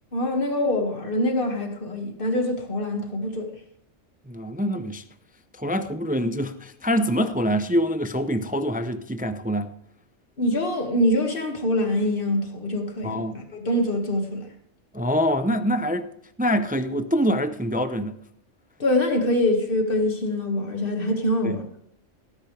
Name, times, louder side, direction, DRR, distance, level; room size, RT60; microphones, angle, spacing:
voice 1, 0.1-3.5 10.4-14.5 18.8-21.6, left 1 dB, 45° left, 2.1 m, -24 dB
voice 2, 4.3-5.0 5.5-9.7 13.0-13.3 14.9-16.1 16.4-18.2 21.4-21.6, equal, 10° right, 0.4 m, -25 dB
18.5 x 10.5 x 3.3 m
omnidirectional pair, 1.3 m